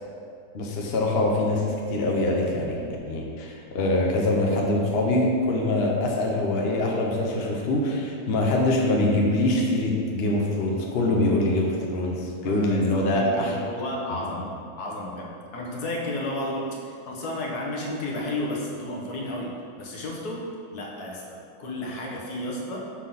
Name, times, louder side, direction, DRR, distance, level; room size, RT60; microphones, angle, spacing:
voice 1, 0.5-13.5, left 1 dB, 50° left, -1 dB, 0.9 m, -24 dB
voice 2, 12.4-20.4 20.7-22.9, left 1 dB, 80° left, -2 dB, 1.6 m, -32 dB
6.5 x 3.8 x 5.7 m, 2.4 s
omnidirectional pair, 1.6 m